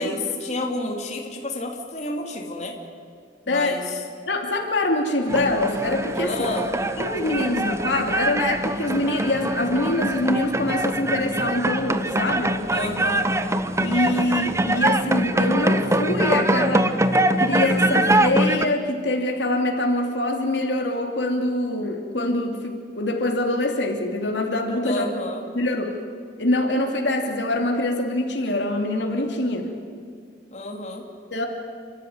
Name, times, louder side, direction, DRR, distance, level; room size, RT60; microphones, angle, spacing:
voice 1, 0.0-2.8 3.5-4.0 6.2-6.7 12.7-13.3 24.8-25.4 30.5-31.0, left 2 dB, 40° left, 0 dB, 3.1 m, -30 dB
voice 2, 4.3-6.3 7.0-12.6 13.8-16.9 17.4-25.1 25.5-26.0 26.4-29.7 31.3-31.5, left 1 dB, 85° left, 1 dB, 2.9 m, -24 dB
sound 1, 5.3-18.7, right 1 dB, 15° right, 0.8 m, -23 dB
29.5 x 13.5 x 9.7 m, 2.2 s
head